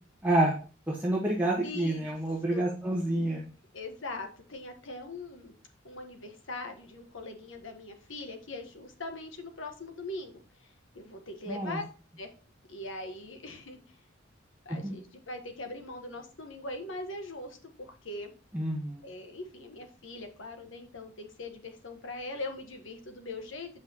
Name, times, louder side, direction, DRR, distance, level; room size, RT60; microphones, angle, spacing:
voice 1, 0.2-0.5 0.9-3.5 11.5-11.8 14.8-14.9 18.5-19.0, right 1 dB, 10° right, -4 dB, 1.2 m, -28 dB
voice 2, 1.6-2.1 2.5-2.7 3.7-5.5 5.8-11.8 12.2-12.3 12.7-13.8 14.6-18.3 19.0-23.7, left 2 dB, 80° left, 5 dB, 1.3 m, -41 dB
7.8 x 5.7 x 2.9 m, 0.38 s
head